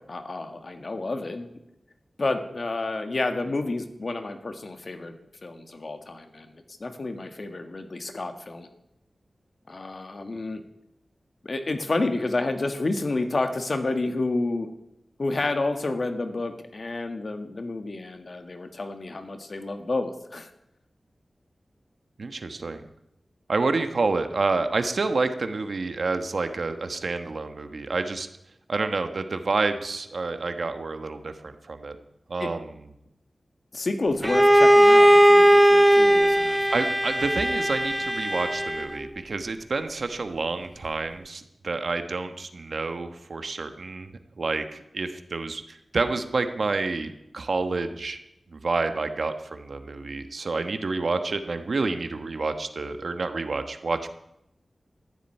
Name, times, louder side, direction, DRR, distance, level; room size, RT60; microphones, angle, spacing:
voice 1, 0.1-1.6 2.2-5.1 5.4-8.7 9.7-10.6 11.4-14.7 15.2-20.5 32.4-32.5 33.7-36.6, left 2 dB, 55° left, 6 dB, 1.7 m, -30 dB
voice 2, 22.2-22.8 23.5-28.3 28.7-32.0 32.3-32.7 36.7-48.2 48.5-54.1, right 3 dB, 70° right, 8 dB, 1.3 m, -29 dB
Bowed string instrument, 34.2-39.0, equal, 10° right, 0.5 m, -18 dB
14.0 x 7.6 x 9.9 m, 0.85 s
wide cardioid pair, 60°, 0 cm